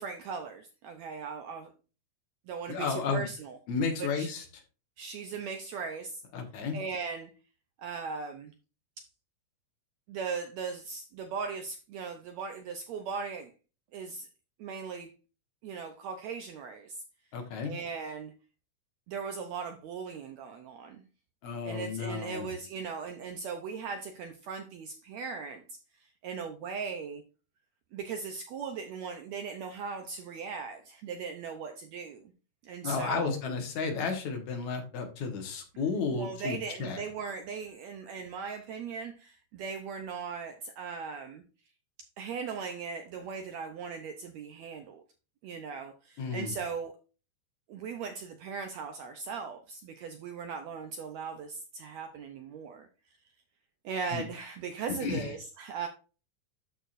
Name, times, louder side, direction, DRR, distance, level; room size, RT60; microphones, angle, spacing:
voice 1, 0.0-1.7 2.5-3.6 4.0-4.3 5.0-6.2 6.7-7.3 7.8-8.5 9.0-9.1 10.1-13.5 13.9-14.3 14.6-15.1 15.6-17.0 17.6-18.3 19.1-21.0 21.6-27.2 27.9-32.3 32.6-33.4 36.1-41.4 42.2-45.0 45.4-46.9 47.7-52.9 53.8-55.9, right 5 dB, 75° right, 1.6 m, -38 dB
voice 2, 2.7-3.3 3.7-4.5 6.3-6.8 17.3-17.7 21.4-22.5 32.8-37.0 46.2-46.5 54.1-54.2 55.0-55.3, left 5 dB, 65° left, 2.4 m, -32 dB
12.5 x 4.6 x 2.5 m
omnidirectional pair, 3.8 m